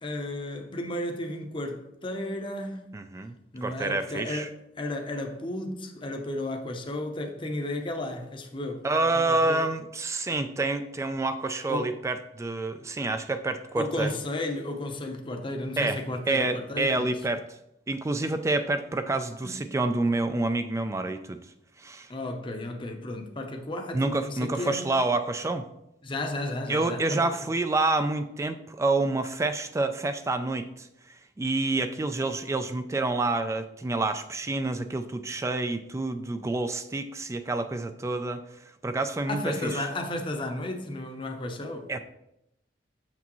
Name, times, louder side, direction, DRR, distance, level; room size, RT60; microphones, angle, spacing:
voice 1, 0.0-3.0 3.5-4.5 4.8-9.6 11.7-11.9 13.8-17.2 19.4-19.6 22.1-24.9 26.0-27.3 39.3-42.0, left 1 dB, 30° left, 0.7 m, -33 dB
voice 2, 2.9-3.3 3.6-4.5 8.8-14.1 15.8-17.4 17.9-21.4 21.8-22.1 23.9-25.7 26.7-30.9 31.4-38.4 38.8-39.9 41.9-42.0, right 2 dB, 15° right, 0.3 m, -28 dB
7.1 x 5.9 x 3.0 m
head